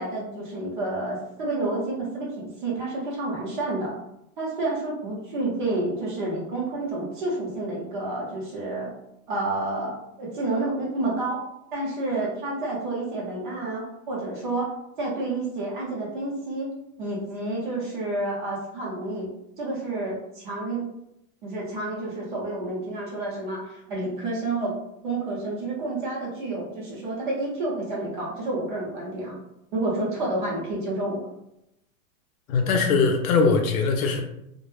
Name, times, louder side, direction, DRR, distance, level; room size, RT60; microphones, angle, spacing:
voice 1, 0.0-3.9 4.4-8.9 9.3-11.4 11.7-14.7 15.0-16.7 17.0-19.3 19.6-20.8 21.4-24.7 25.0-29.3 29.7-31.2, right 2 dB, 35° right, -4 dB, 0.6 m, -29 dB
voice 2, 32.5-34.2, left 4 dB, 70° left, 4 dB, 0.6 m, -21 dB
2.1 x 2.0 x 3.0 m, 0.82 s
supercardioid pair, 175°, 43 cm